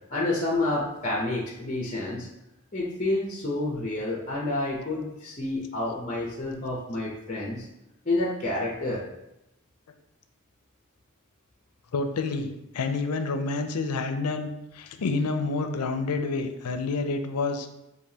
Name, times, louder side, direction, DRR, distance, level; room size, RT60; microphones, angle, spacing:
voice 1, 0.1-2.3 2.7-7.7 8.0-9.0, left 2 dB, 35° left, -3 dB, 0.6 m, -29 dB
voice 2, 11.9-14.5 14.7-17.7, left 3 dB, 90° left, 8 dB, 0.5 m, -28 dB
6.6 x 2.7 x 2.8 m, 0.90 s
head